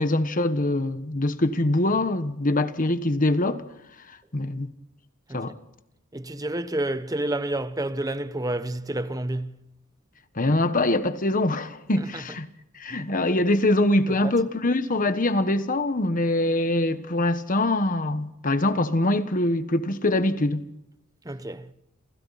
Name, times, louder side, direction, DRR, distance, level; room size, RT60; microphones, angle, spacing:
voice 1, 0.0-3.6 4.1-4.7 5.3-5.5 10.3-12.5 12.7-20.6, left 1 dB, 40° left, 1.4 m, -23 dB
voice 2, 6.1-9.6 12.0-12.2 12.9-13.0 14.2-14.3 21.2-21.7, right 1 dB, 15° right, 1.0 m, -29 dB
29.0 x 28.5 x 4.2 m
head